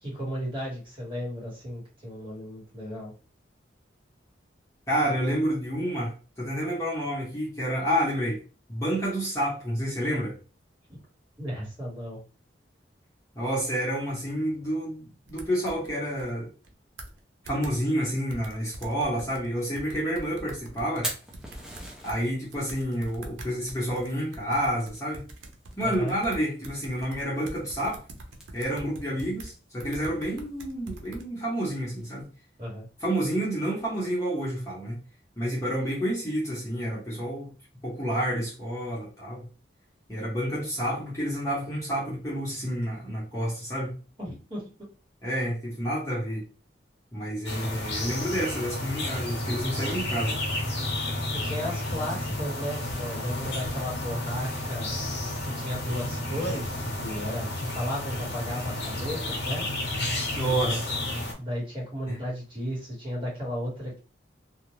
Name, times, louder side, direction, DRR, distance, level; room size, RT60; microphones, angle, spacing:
voice 1, 0.0-3.1 11.4-12.2 25.8-26.2 32.6-32.9 44.2-44.9 51.2-54.9 55.4-59.6 60.4-60.8 61.4-64.0, equal, 30° right, -5 dB, 1.3 m, -34 dB
voice 2, 4.9-8.4 8.7-10.3 13.3-16.5 17.4-21.1 22.0-25.2 25.8-28.0 28.5-32.2 33.0-35.0 35.4-37.5 37.8-39.4 40.1-43.9 45.2-46.4 47.1-50.4 60.3-60.9 62.1-62.2, equal, 15° left, -6 dB, 0.9 m, -29 dB
sound 1, 15.3-16.3 16.6-16.7 17.0-17.2 17.5-17.7 18.3-19.5 19.8-22.2 22.5-29.5 29.8-31.2, right 1 dB, 85° right, 0.6 m, -43 dB
Fire, 20.8-32.2, right 1 dB, 5° right, 0.5 m, -45 dB
sound 2, 47.5-61.3, left 1 dB, 70° left, 0.7 m, -31 dB
2.4 x 2.1 x 3.0 m, 0.34 s
head